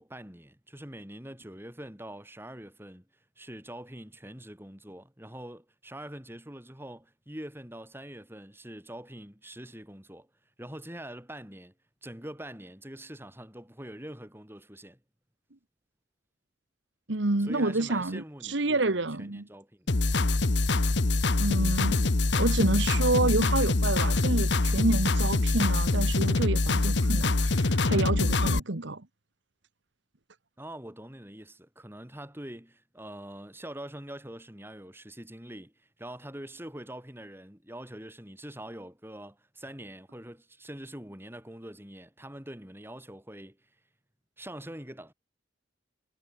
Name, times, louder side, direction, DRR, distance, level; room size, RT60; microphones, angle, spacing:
voice 1, 0.0-3.1 3.4-10.3 10.6-11.7 12.0-15.0 17.5-20.0 30.6-43.6 44.4-45.1, right 1 dB, 10° right, 5.2 m, -44 dB
voice 2, 17.1-19.5 21.4-22.0 22.3-29.0, right 2 dB, 70° right, 1.5 m, -28 dB
sound 1, 19.9-28.6, left 2 dB, 65° left, 1.1 m, -24 dB
head